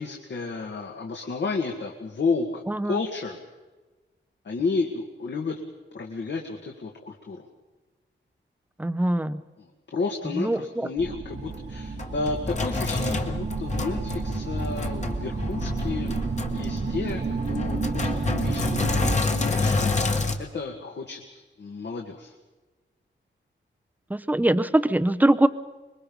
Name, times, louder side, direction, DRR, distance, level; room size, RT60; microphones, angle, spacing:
voice 1, 0.0-3.4 4.4-5.6 5.9-7.5 9.6-9.7 9.9-16.2 16.5-17.2 17.5-19.9 20.4-22.3, left 4 dB, 65° left, 1 dB, 2.1 m, -32 dB
voice 2, 2.7-3.0 8.8-9.4 10.4-10.9 24.1-25.5, right 1 dB, 10° right, 12 dB, 0.7 m, -22 dB
sound 1, 11.0-19.2, right 4 dB, 45° right, 1.2 m, -31 dB
Sink (filling or washing), 11.5-20.4, left 3 dB, 35° left, 1.7 m, -28 dB
26.0 x 22.0 x 5.5 m, 1.2 s
wide cardioid pair, 170°, 20 cm